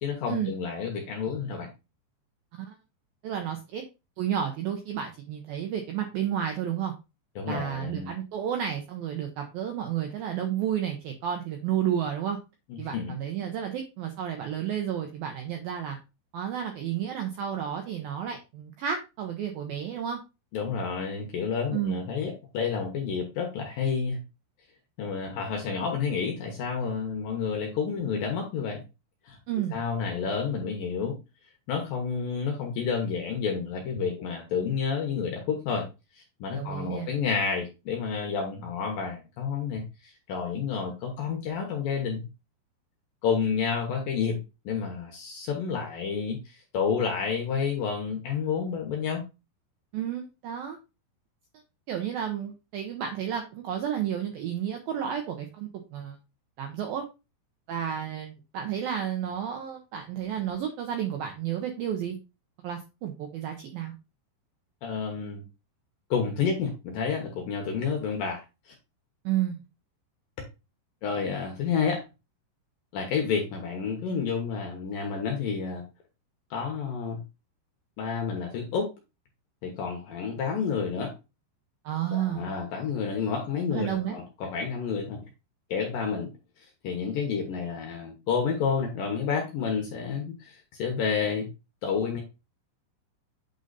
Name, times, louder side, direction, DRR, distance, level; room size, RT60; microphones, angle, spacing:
voice 1, 0.0-1.7 7.4-8.1 12.7-13.2 20.5-24.2 25.0-28.8 29.3-29.4 29.7-31.2 31.7-35.9 36.2-42.3 43.2-44.4 44.7-49.2 64.8-65.4 66.1-68.7 71.0-72.0 72.9-75.8 76.5-77.2 78.0-78.9 79.6-81.1 82.1-85.2 85.7-86.3 86.6-91.5 91.8-92.2, left 6 dB, 70° left, 2 dB, 2.2 m, -30 dB
voice 2, 3.2-3.8 4.2-6.9 7.5-12.4 12.8-16.0 16.3-20.2 21.7-22.0 29.5-29.8 36.5-37.1 49.9-50.8 51.9-56.2 56.6-57.0 57.7-62.2 62.6-63.9 69.2-69.6 81.8-82.5 83.7-84.2, right 9 dB, 80° right, 4 dB, 2.1 m, -31 dB
8.8 x 3.9 x 4.0 m, 0.28 s
omnidirectional pair, 5.4 m